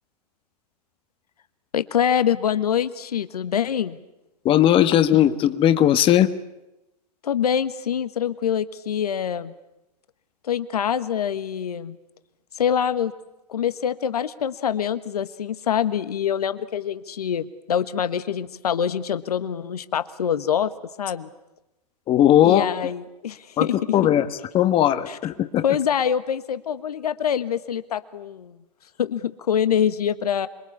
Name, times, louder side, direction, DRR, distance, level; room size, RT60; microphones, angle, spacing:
voice 1, 1.7-4.0 7.2-9.5 10.4-12.0 12.6-13.1 13.5-20.7 21.0-21.3 22.4-23.9 25.1-25.2 25.6-28.5 29.0-30.5, left 8 dB, 70° left, 12 dB, 1.5 m, -25 dB
voice 2, 4.4-6.3 22.1-22.6 23.6-23.7 23.9-24.3 24.5-25.6, left 11 dB, 25° left, 11 dB, 1.4 m, -18 dB
27.0 x 23.0 x 8.5 m, 0.95 s
figure-of-eight pair, 110°, 21 cm